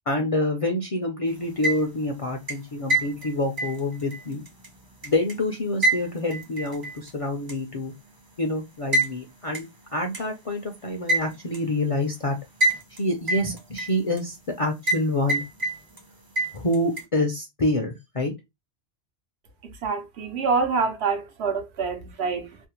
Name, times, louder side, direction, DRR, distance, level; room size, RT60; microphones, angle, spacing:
voice 1, 0.1-4.4 5.0-7.9 8.4-9.7 9.9-12.4 13.0-15.4 16.5-18.3, left 1 dB, 50° left, 0.4 m, -27 dB
sound 1, 1.4-2.1 2.5-5.3 5.8-7.1 7.5-7.6 8.9-9.1 9.5-9.6 10.1-10.2 11.1-11.6 12.6-13.0 13.3-14.2 14.9-15.0 15.3-16.0 16.4-17.0, right 1 dB, 30° right, 0.5 m, -26 dB
voice 2, 19.6-22.6, right 5 dB, 80° right, 0.9 m, -26 dB
2.6 x 2.0 x 2.9 m
omnidirectional pair, 1.1 m